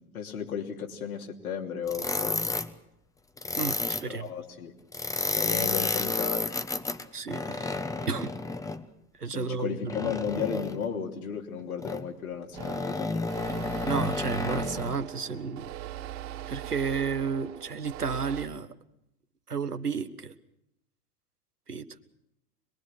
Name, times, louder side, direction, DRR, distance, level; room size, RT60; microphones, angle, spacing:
voice 1, 0.0-2.5 4.1-4.8 5.4-6.5 7.6-8.1 9.3-13.3, left 7 dB, 70° left, 2 dB, 3.1 m, -34 dB
sound 1, 1.9-2.7 3.4-4.1 4.9-8.8 9.9-10.9 11.8-12.1 12.5-15.0, left 3 dB, 5° left, 1.0 m, -31 dB
voice 2, 3.6-4.3 7.1-7.8 8.1-8.3 9.2-10.1 13.9-15.7 16.5-18.7 19.5-20.3 21.7-21.9, right 5 dB, 85° right, 10 dB, 1.3 m, -32 dB
sound 2, 12.5-18.5, right 13 dB, 55° right, 2.8 m, -40 dB
25.5 x 21.5 x 6.1 m, 0.81 s
figure-of-eight pair, 85°, 45 cm